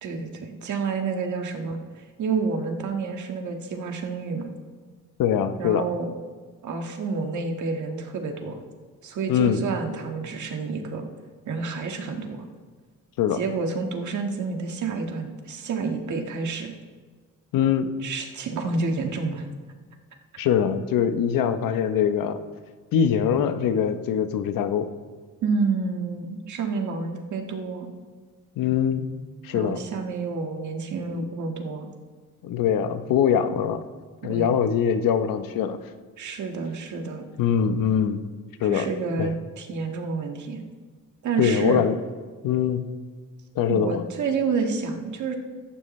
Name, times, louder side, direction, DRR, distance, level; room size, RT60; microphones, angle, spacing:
voice 1, 0.0-4.5 5.6-6.1 6.6-8.6 9.0-11.1 11.5-12.5 13.3-16.7 18.0-19.5 25.4-27.9 29.5-31.9 34.2-34.6 36.2-37.2 38.6-40.6 41.2-41.8 43.7-45.4, right 4 dB, 60° right, 4 dB, 1.7 m, -29 dB
voice 2, 5.2-5.9 9.3-9.6 13.2-13.4 17.5-17.9 20.4-22.4 22.9-24.9 28.6-29.1 29.4-29.8 32.4-33.8 34.2-35.8 37.4-38.2 38.6-38.9 39.2-39.3 41.4-41.9 42.4-42.9 43.6-44.0, left 8 dB, 80° left, 10 dB, 0.9 m, -23 dB
14.5 x 14.5 x 3.2 m, 1.5 s
cardioid pair, 130°, 33 cm